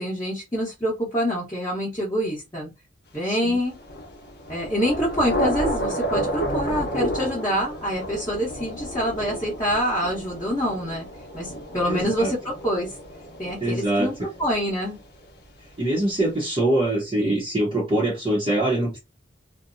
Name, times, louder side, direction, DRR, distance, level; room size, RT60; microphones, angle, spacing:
voice 1, 0.0-2.7 3.1-3.7 4.5-11.1 11.3-13.0 13.4-14.1 14.4-15.0, equal, 20° left, 1.0 m, -26 dB
voice 2, 3.2-3.6 11.9-12.3 13.6-14.3 15.8-19.0, right 1 dB, 30° right, 0.8 m, -24 dB
Thunder / Rain, 3.7-15.3, equal, 60° left, 0.8 m, -31 dB
2.7 x 2.1 x 2.5 m
head